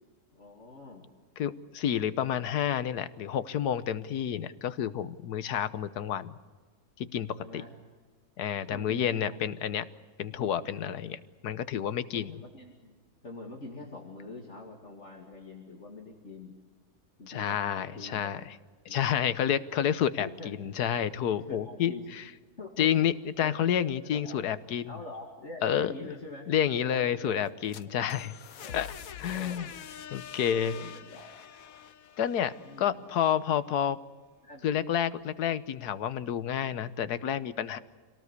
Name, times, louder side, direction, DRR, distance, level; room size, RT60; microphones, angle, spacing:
voice 1, 0.3-1.1 7.4-7.7 8.7-9.4 12.1-12.9 13.2-16.6 17.2-18.3 18.9-19.2 20.2-20.5 21.5-22.0 22.6-22.9 23.4-23.6 24.1-24.4 24.9-26.5 26.9-27.4 28.6-28.8 29.2-29.7 30.5-31.4 31.9-32.0 32.6-33.1 34.4-34.7, left 3 dB, 45° left, -1 dB, 2.7 m, -45 dB
voice 2, 1.4-6.4 7.0-7.6 8.4-9.9 10.2-12.3 17.3-18.4 18.9-21.9 22.8-24.9 25.6-26.1 26.5-28.3 28.7-28.9 29.2-29.7 30.1-30.9 32.2-34.0 34.6-37.8, left 9 dB, 80° left, 14 dB, 1.5 m, -29 dB
sound 1, 27.5-33.3, left 9 dB, 65° left, 1.3 m, -45 dB
26.0 x 18.5 x 8.2 m, 1.5 s
omnidirectional pair, 1.7 m